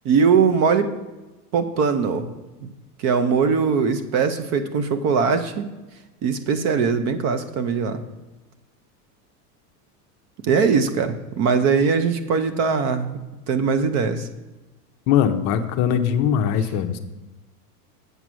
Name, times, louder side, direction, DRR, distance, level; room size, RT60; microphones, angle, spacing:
voice 1, 0.0-0.9 1.5-2.3 2.6-2.7 3.0-5.7 6.2-8.0 10.4-13.2 13.5-14.3, right 5 dB, 35° right, 10 dB, 0.6 m, -21 dB
voice 2, 15.1-17.0, left 8 dB, 40° left, 8 dB, 0.6 m, -21 dB
8.1 x 6.0 x 6.1 m, 1.1 s
supercardioid pair, 140°, 47 cm